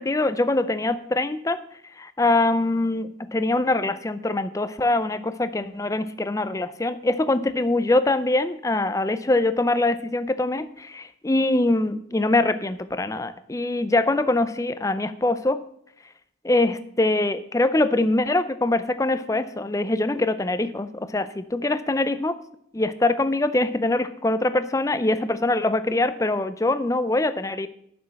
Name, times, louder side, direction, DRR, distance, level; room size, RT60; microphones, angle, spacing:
voice 1, 0.0-1.6 2.0-15.6 16.4-22.4 22.7-27.7, left 2 dB, 15° left, 12 dB, 0.4 m, -23 dB
7.1 x 6.3 x 7.6 m, 0.71 s
head